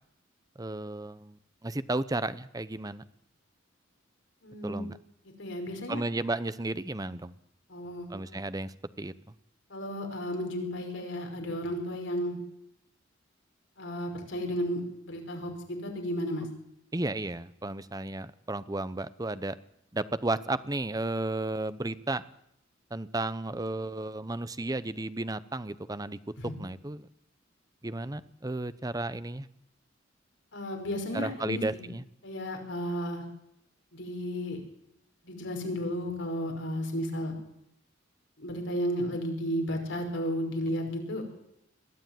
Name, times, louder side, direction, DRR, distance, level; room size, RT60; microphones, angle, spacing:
voice 1, 0.6-3.0 4.6-5.0 5.9-7.3 8.1-9.1 16.9-19.6 19.9-22.2 22.9-26.2 26.6-27.1 27.8-29.5 31.1-32.0, right 2 dB, 20° right, 15 dB, 0.8 m, -33 dB
voice 2, 4.4-4.9 5.4-6.0 7.7-8.4 9.7-12.4 13.8-16.5 26.4-26.5 30.5-31.9 32.2-33.2 33.9-34.6 35.2-37.3 38.4-41.2, equal, 70° left, 3 dB, 5.8 m, -33 dB
21.5 x 14.5 x 9.3 m, 0.78 s
head